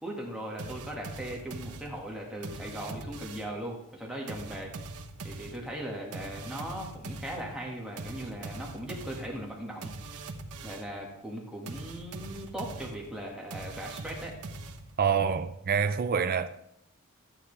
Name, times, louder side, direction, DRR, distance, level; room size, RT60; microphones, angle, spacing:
voice 1, 0.0-4.7 5.2-10.2 10.6-14.4, right 1 dB, 5° right, 1.8 m, -39 dB
sound 1, 0.6-3.6 4.3-11.0 11.7-15.2, right 2 dB, 85° right, 1.0 m, -42 dB
voice 2, 15.0-16.5, right 6 dB, 45° right, 0.5 m, -26 dB
13.0 x 9.2 x 3.4 m
head